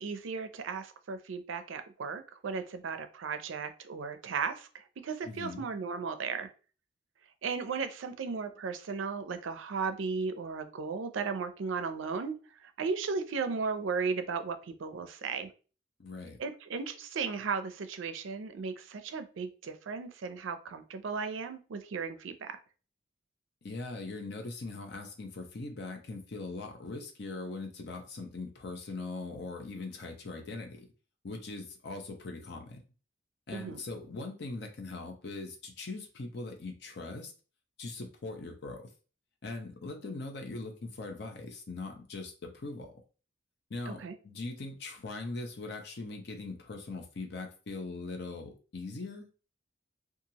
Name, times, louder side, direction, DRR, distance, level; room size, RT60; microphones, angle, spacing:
voice 1, 0.0-6.5 7.4-12.3 12.6-15.5 16.4-22.6 33.5-33.8 43.9-44.2, right 5 dB, 80° right, 9 dB, 0.4 m, -35 dB
voice 2, 5.2-5.7 16.0-16.4 23.6-30.9 31.2-32.8 33.5-37.3 37.8-38.9 39.4-43.0 43.7-49.3, left 3 dB, 55° left, 3 dB, 0.6 m, -41 dB
2.9 x 2.4 x 2.7 m, 0.35 s
head